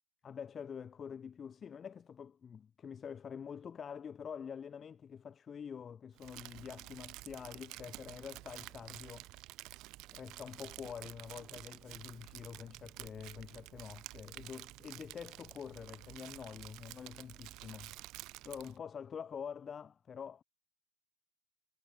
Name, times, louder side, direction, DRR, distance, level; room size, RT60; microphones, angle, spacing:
voice 1, 0.2-9.3 10.1-18.0 18.4-20.4, left 7 dB, 20° left, 2.2 m, -46 dB
Crumpling crinkling, 6.2-18.8, right 19 dB, 40° right, 5.3 m, -51 dB
figure-of-eight pair, 90°, 0 cm